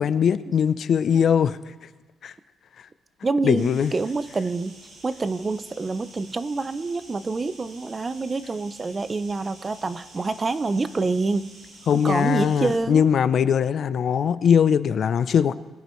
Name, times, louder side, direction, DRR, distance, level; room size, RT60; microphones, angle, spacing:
voice 1, 0.0-1.6 2.2-2.3 3.4-3.9 11.9-15.5, left 7 dB, 60° left, 14 dB, 0.5 m, -21 dB
voice 2, 3.2-4.8 5.0-11.5 11.9-13.0, right 3 dB, 30° right, 14 dB, 0.5 m, -27 dB
sound 1, 3.5-12.8, right 2 dB, 85° right, 4.0 m, -48 dB
22.5 x 8.3 x 3.1 m, 1.2 s
cardioid pair, 90°, 0 cm